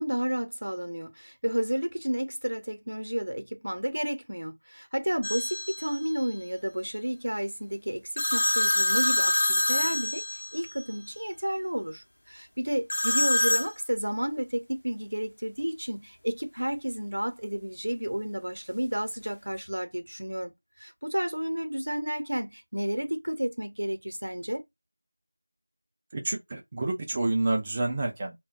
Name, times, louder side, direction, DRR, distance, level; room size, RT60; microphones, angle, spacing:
voice 1, 0.0-20.5 20.8-24.6, equal, 70° right, 0.8 m, -31 dB
sound 1, 5.2-6.0 8.2-10.8 12.9-13.7, left 1 dB, 45° left, 0.7 m, -26 dB
voice 2, 26.1-28.4, right 2 dB, 15° right, 0.3 m, -28 dB
2.2 x 2.2 x 3.6 m
figure-of-eight pair, 175°, 0 cm